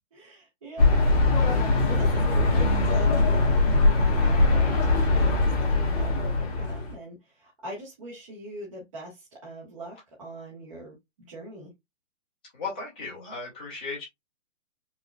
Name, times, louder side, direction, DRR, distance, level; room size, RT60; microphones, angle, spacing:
voice 1, 0.1-1.0 1.8-10.9 11.3-11.7, right 1 dB, 25° right, 1.2 m, -42 dB
sound 1, 0.8-6.9, left 2 dB, 30° left, 1.3 m, -21 dB
voice 2, 12.5-14.0, left 4 dB, 10° left, 0.7 m, -36 dB
4.9 x 2.8 x 2.3 m
hypercardioid pair, 175°, 39 cm